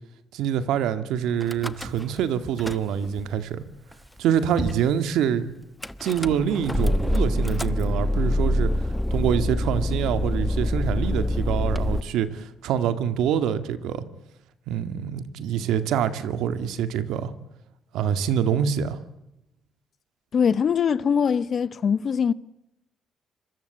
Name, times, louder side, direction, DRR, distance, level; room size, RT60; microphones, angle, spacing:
voice 1, 0.3-3.6 4.2-5.5 6.0-8.7 9.1-14.0 14.7-17.3 17.9-19.0, right 9 dB, 85° right, 2.1 m, -25 dB
Car / Engine starting / Idling, 1.4-2.2 2.5-3.2 3.9-4.0 4.2-4.3 4.6-4.9 5.8-12.0, left 1 dB, 5° left, 1.2 m, -25 dB
voice 2, 20.3-22.3, left 7 dB, 55° left, 1.1 m, -22 dB
26.0 x 23.0 x 8.4 m
cardioid pair, 90°, 0 cm